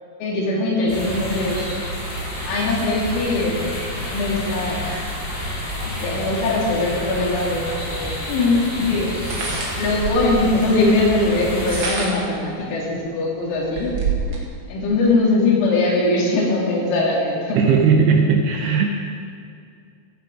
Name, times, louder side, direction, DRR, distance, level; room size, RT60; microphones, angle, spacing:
voice 1, 0.2-1.6 2.4-3.6 4.0-5.0 5.8-7.7 8.0-9.1 9.7-14.4 14.7-17.6, left 2 dB, 90° left, -3 dB, 4.7 m, -21 dB
sound 1, 0.9-11.8, equal, 55° left, 5.9 m, -29 dB
sound 2, 7.8-7.9 9.1-10.5 11.4-12.3 12.9-13.0 13.4-14.4, right 4 dB, 50° right, 1.7 m, -27 dB
voice 2, 17.6-18.9, right 5 dB, 80° right, 2 dB, 2.4 m, -17 dB
16.0 x 8.7 x 5.1 m, 2.4 s
omnidirectional pair, 5.4 m